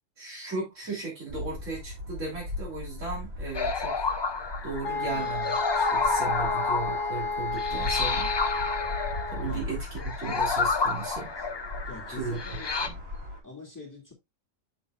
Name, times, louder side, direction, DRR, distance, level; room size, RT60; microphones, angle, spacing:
voice 1, 0.2-4.1 4.6-8.3 9.3-11.3 12.1-12.4 12.8-12.9, right 4 dB, 70° right, 3.3 m, -36 dB
sound 1, 1.3-13.4, left 2 dB, 50° right, 2.4 m, -39 dB
sound 2, 3.5-12.9, left 4 dB, 35° left, 0.4 m, -30 dB
sound 3, 4.8-9.5, left 4 dB, 85° left, 1.7 m, -32 dB
voice 2, 5.0-5.3 9.5-9.7 10.8-11.1 11.4-11.5 11.9-12.7 13.4-14.1, left 3 dB, 15° left, 2.1 m, -45 dB
7.4 x 6.9 x 2.3 m
omnidirectional pair, 1.3 m